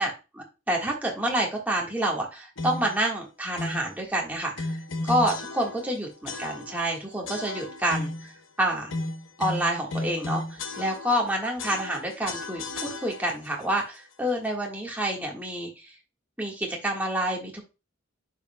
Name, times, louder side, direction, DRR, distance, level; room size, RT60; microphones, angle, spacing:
voice 1, 0.0-8.3 8.6-8.9 9.4-12.6 13.0-15.9 16.4-17.6, right 1 dB, 10° right, -2 dB, 1.6 m, -28 dB
sound 1, 2.6-3.0 3.6-3.9 4.6-5.9 6.3-6.9 7.3-8.3 8.9-11.3 11.6-13.5, left 2 dB, 80° left, 1.1 m, -34 dB
9.6 x 5.6 x 2.3 m, 0.29 s
head